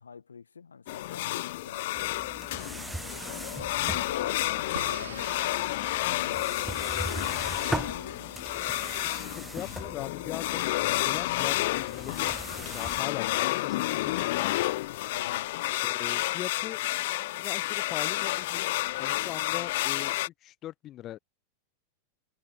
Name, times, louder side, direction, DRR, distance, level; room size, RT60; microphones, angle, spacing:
voice 1, 0.0-2.0 3.5-5.7 6.0-8.5 15.1-15.8, left 6 dB, 75° left, 1.7 m, -45 dB
sound 1, 0.9-20.3, left 18 dB, 55° left, 0.4 m, -30 dB
sound 2, 1.9-13.0, right 2 dB, 5° right, 1.0 m, -40 dB
sound 3, 2.8-8.3, right 8 dB, 65° right, 4.8 m, -49 dB
voice 2, 9.0-12.4 12.6-14.6 15.7-16.8 17.4-21.2, left 13 dB, 35° left, 0.9 m, -41 dB
figure-of-eight pair, 90°, 0 cm